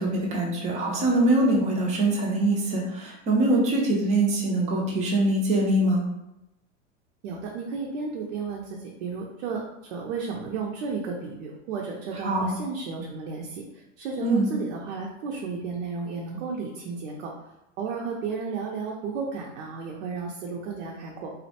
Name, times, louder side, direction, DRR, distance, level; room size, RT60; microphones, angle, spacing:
voice 1, 0.0-6.0 12.2-12.6 14.2-14.5, right 1 dB, 20° right, -1 dB, 0.4 m, -23 dB
voice 2, 7.2-9.6 9.9-13.6 14.0-17.3 17.8-21.3, right 5 dB, 75° right, -1 dB, 0.5 m, -33 dB
2.5 x 2.1 x 2.7 m, 0.89 s
supercardioid pair, 125°, 39 cm